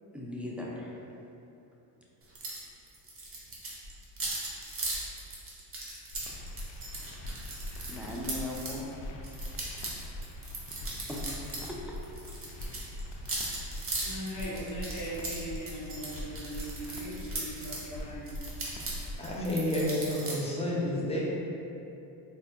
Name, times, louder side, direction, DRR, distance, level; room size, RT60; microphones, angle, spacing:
voice 1, 0.1-0.9 6.9-7.2 7.9-9.0 11.1-11.2 17.9-18.0, left 2 dB, 5° right, -5 dB, 0.3 m, -38 dB
sound 1, 2.4-2.6 2.9-8.8 9.2-11.7 12.0-17.8 18.3-20.3, right 2 dB, 30° right, 0.9 m, -38 dB
sound 2, 6.1-19.4, left 1 dB, 70° left, 0.6 m, -42 dB
voice 2, 14.0-18.4 18.7-18.8, right 1 dB, 40° left, -6 dB, 1.0 m, -39 dB
voice 3, 19.2-21.2, left 1 dB, 15° left, -5 dB, 0.7 m, -30 dB
4.1 x 2.2 x 2.7 m, 2.8 s
supercardioid pair, 80°, 48 cm